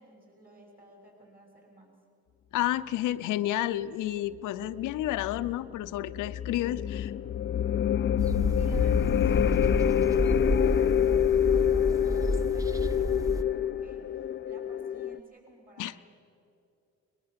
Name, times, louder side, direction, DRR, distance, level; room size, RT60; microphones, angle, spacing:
voice 1, 0.0-2.0 8.2-16.1, right 1 dB, 30° right, 0 dB, 6.6 m, -54 dB
voice 2, 2.5-7.1 15.8-16.0, left 13 dB, 85° left, 11 dB, 0.6 m, -31 dB
sound 1, 4.9-15.2, left 10 dB, 40° left, 0.4 m, -27 dB
sound 2, 8.2-13.4, equal, 10° right, 0.8 m, -30 dB
20.5 x 20.5 x 7.5 m, 2.6 s
cardioid pair, 90°, 30 cm